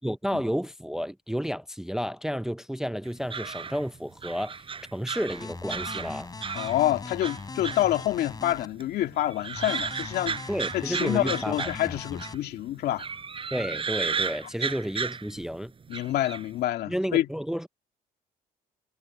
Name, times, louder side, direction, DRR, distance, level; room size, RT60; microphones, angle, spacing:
voice 1, 0.0-4.6 4.9-6.3 10.5-11.7 13.5-15.7 16.9-17.7, equal, 5° right, 0.5 m, -31 dB
sound 1, 3.1-6.8 7.2-8.5 8.8-12.5 12.9-15.5 15.9-16.5, right 5 dB, 30° right, 4.7 m, -34 dB
sound 2, 5.3-8.7 9.6-12.4, left 4 dB, 20° left, 6.0 m, -40 dB
voice 2, 6.5-10.4 10.7-13.1 15.9-17.3, left 13 dB, 70° left, 2.2 m, -27 dB
cardioid pair, 110°, 17 cm